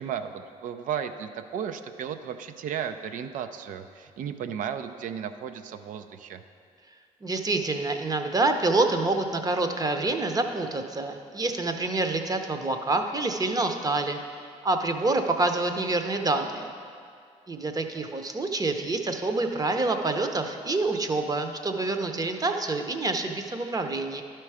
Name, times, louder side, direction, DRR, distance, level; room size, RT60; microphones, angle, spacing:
voice 1, 0.0-6.4, right 8 dB, 65° right, 9 dB, 0.5 m, -34 dB
voice 2, 7.2-14.2 14.6-16.7 17.5-24.2, right 2 dB, 25° right, 6 dB, 0.8 m, -27 dB
11.5 x 4.5 x 4.8 m, 2.2 s
supercardioid pair, 65°, 15 cm